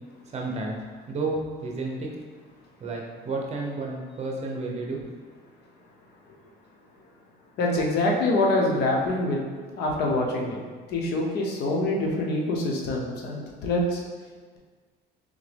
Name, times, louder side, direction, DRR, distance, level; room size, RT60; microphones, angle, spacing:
voice 1, 0.3-0.8 1.1-2.1 2.8-5.0, right 3 dB, 40° right, 0 dB, 0.8 m, -31 dB
voice 2, 7.6-9.4 9.8-10.6 10.9-14.0, left 2 dB, 75° left, -1 dB, 0.8 m, -25 dB
3.7 x 3.5 x 3.4 m, 1.5 s
cardioid pair, 110°, 17 cm